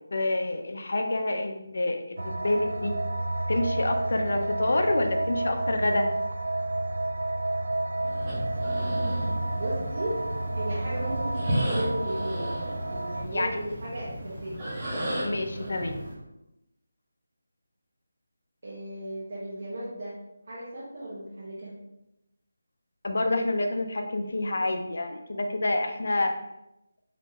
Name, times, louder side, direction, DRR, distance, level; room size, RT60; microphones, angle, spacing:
voice 1, 0.1-3.0 3.5-6.1 13.3-13.6 15.2-16.0 23.0-26.3, left 2 dB, 60° left, 4 dB, 0.6 m, -27 dB
sound 1, 2.2-13.2, right 2 dB, 65° right, 0.5 m, -30 dB
sound 2, 8.0-16.1, equal, 15° right, 1.2 m, -34 dB
voice 2, 9.5-10.2 10.5-12.5 12.8-14.8 18.6-20.1 20.5-21.7, right 1 dB, 50° right, -8 dB, 1.3 m, -35 dB
5.3 x 3.2 x 2.9 m, 0.88 s
figure-of-eight pair, 175°, 0 cm